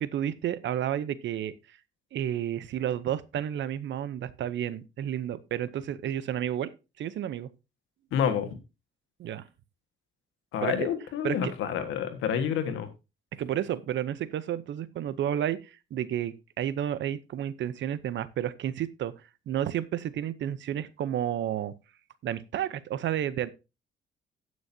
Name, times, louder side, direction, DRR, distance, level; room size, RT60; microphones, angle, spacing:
voice 1, 0.0-1.5 2.1-6.7 7.0-7.5 9.2-9.4 10.6-10.9 11.2-11.5 13.4-19.1 19.5-21.7 22.2-23.5, right 10 dB, 70° right, 0.8 m, -31 dB
voice 2, 8.1-8.5 10.5-12.9, left 8 dB, 90° left, 1.6 m, -28 dB
16.5 x 6.3 x 2.8 m
cardioid pair, 90°, 20 cm